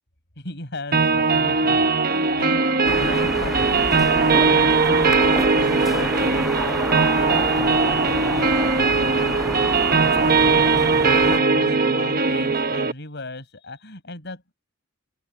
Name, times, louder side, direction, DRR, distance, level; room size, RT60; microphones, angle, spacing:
voice 1, 0.4-14.5, left 2 dB, 55° left, 7.7 m, -37 dB
sound 1, 0.9-12.9, right 4 dB, 45° right, 1.1 m, -20 dB
sound 2, 2.8-11.4, equal, ahead, 0.3 m, -29 dB
sound 3, 3.7-8.5, right 5 dB, 75° right, 4.9 m, -37 dB
open air
head